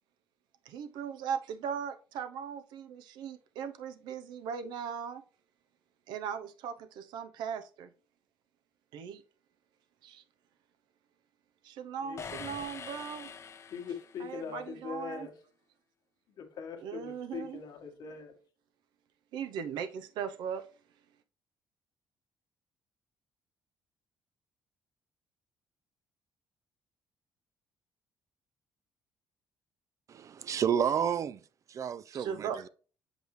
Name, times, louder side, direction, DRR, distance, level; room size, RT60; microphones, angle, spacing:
voice 1, 0.7-5.2 6.1-7.9 8.9-9.2 10.0-10.2 11.6-13.3 14.2-15.3 16.8-17.6 19.3-20.6 32.1-32.7, right 7 dB, 85° right, 0.7 m, -38 dB
voice 2, 12.0-12.3 13.7-15.3 16.4-18.3, left 6 dB, 65° left, 1.4 m, -41 dB
sound 1, 12.2-14.4, left 6 dB, 40° left, 0.7 m, -44 dB
voice 3, 30.1-31.4 31.7-32.7, right 8 dB, 45° right, 0.4 m, -31 dB
6.4 x 5.1 x 3.1 m
cardioid pair, 95°, 7 cm